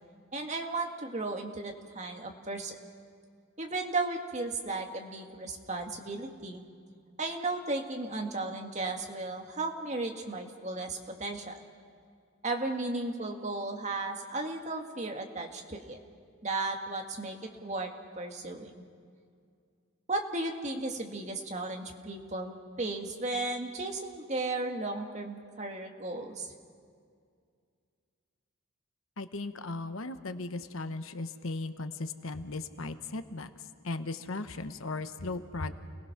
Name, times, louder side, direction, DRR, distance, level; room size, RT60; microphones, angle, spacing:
voice 1, 0.3-2.8 3.6-6.6 7.2-11.6 12.4-16.0 16.4-18.7 20.1-26.5, right 2 dB, 35° right, 3 dB, 1.8 m, -35 dB
voice 2, 29.2-33.5 33.8-35.7, left 2 dB, 70° left, 9 dB, 1.1 m, -37 dB
29.5 x 19.0 x 5.9 m, 2.2 s
head